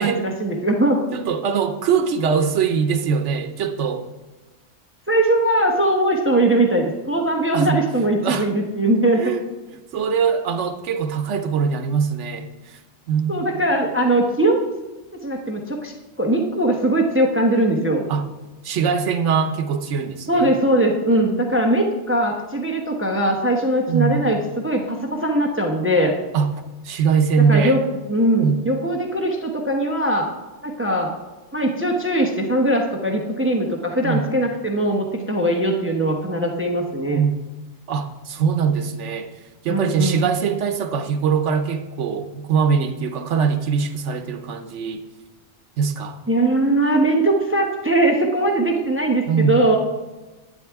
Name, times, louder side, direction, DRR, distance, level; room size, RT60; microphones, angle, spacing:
voice 1, 0.0-1.0 5.1-9.3 13.3-14.6 15.2-18.0 20.3-26.1 27.5-27.8 28.1-30.3 30.6-31.1 31.5-37.2 39.7-40.2 46.3-49.8, right 1 dB, 10° right, 1 dB, 0.8 m, -20 dB
voice 2, 1.1-4.1 7.5-7.8 8.2-8.5 9.2-9.4 9.9-12.8 13.1-13.6 18.1-18.2 18.6-20.5 23.9-24.2 26.3-26.5 26.8-27.8 28.4-28.8 34.0-34.5 37.1-37.3 37.9-39.3 39.6-45.1 45.8-46.2 49.3-49.6, right 6 dB, 85° right, 8 dB, 1.1 m, -22 dB
11.0 x 9.4 x 3.5 m, 1.1 s
omnidirectional pair, 1.2 m